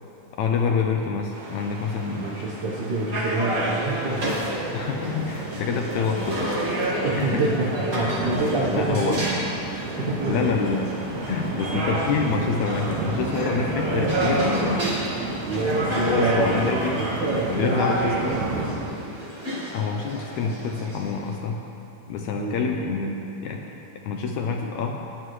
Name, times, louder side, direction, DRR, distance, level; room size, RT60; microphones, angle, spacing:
voice 1, 0.4-2.3 4.7-7.4 8.7-9.3 9.9-10.9 11.2-14.8 16.1-17.0 17.5-18.4 19.7-21.6 22.1-23.1 23.4-23.6 24.0-25.0, left 5 dB, 75° left, 2 dB, 1.8 m, -27 dB
sound 1, 1.3-18.7, right 2 dB, 60° right, 2.6 m, -32 dB
voice 2, 2.2-4.4 7.0-9.4 10.0-10.6 15.4-18.9 22.4-22.6, right 2 dB, 80° right, -5 dB, 0.9 m, -27 dB
sound 2, 3.1-21.3, right 1 dB, 35° right, 1.5 m, -30 dB
16.5 x 10.0 x 3.2 m, 2.8 s
omnidirectional pair, 3.8 m